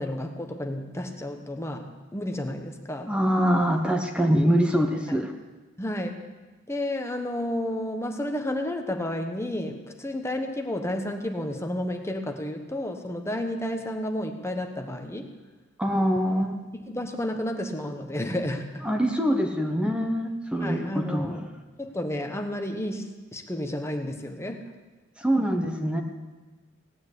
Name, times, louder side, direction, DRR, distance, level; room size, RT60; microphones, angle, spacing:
voice 1, 0.0-3.1 5.1-5.2 5.8-6.2 6.7-15.3 16.9-18.9 20.6-21.4 21.8-24.6, left 1 dB, 15° left, 4 dB, 1.1 m, -31 dB
voice 2, 3.1-5.3 15.8-16.6 18.8-21.4 25.2-26.0, equal, 5° right, 3 dB, 1.1 m, -24 dB
17.5 x 9.6 x 8.2 m, 1.3 s
head